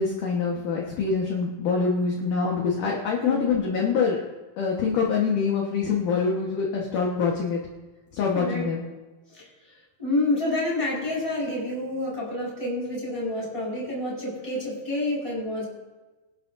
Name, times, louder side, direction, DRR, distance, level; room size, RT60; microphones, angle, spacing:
voice 1, 0.0-4.2 4.6-7.6 8.1-8.8, left 5 dB, 60° left, -2 dB, 2.5 m, -25 dB
voice 2, 3.2-3.5 8.3-8.7 9.3-9.5 10.0-15.6, left 2 dB, 5° left, -6 dB, 5.4 m, -28 dB
25.0 x 11.5 x 2.7 m, 1.2 s
omnidirectional pair, 5.0 m